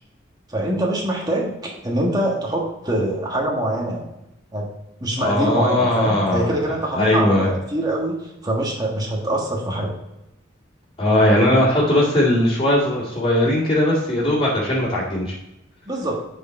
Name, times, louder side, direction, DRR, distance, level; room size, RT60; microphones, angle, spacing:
voice 1, 0.5-4.1 4.5-4.7 5.0-10.0 15.9-16.2, right 1 dB, 20° right, -2 dB, 1.4 m, -24 dB
voice 2, 5.2-6.6 6.9-7.5 11.0-15.3, left 1 dB, 25° left, -11 dB, 2.4 m, -19 dB
9.2 x 4.8 x 4.1 m, 0.89 s
head